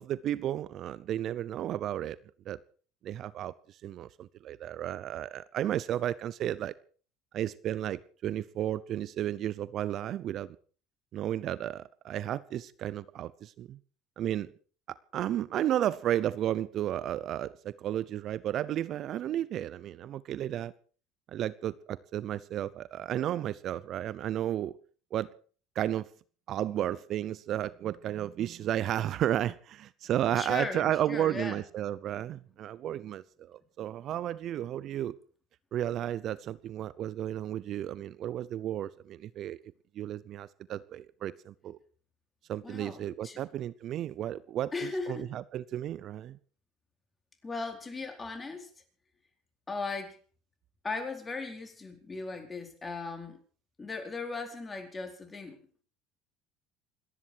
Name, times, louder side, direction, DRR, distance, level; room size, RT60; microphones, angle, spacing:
voice 1, 0.0-2.2 2.5-2.6 3.0-3.5 3.8-6.7 7.3-10.6 11.1-13.8 14.2-14.5 14.9-20.7 21.3-24.8 25.1-25.3 25.8-26.1 26.5-35.2 35.7-39.6 40.0-41.8 42.5-46.4, right 11 dB, 55° right, 19 dB, 0.7 m, -33 dB
voice 2, 30.3-31.6 42.6-43.4 44.7-45.3 47.4-48.7 49.7-50.2 50.8-53.4 53.8-55.6, left 3 dB, 25° left, 5 dB, 4.5 m, -37 dB
27.5 x 11.0 x 4.7 m, 0.41 s
supercardioid pair, 85°, 0 cm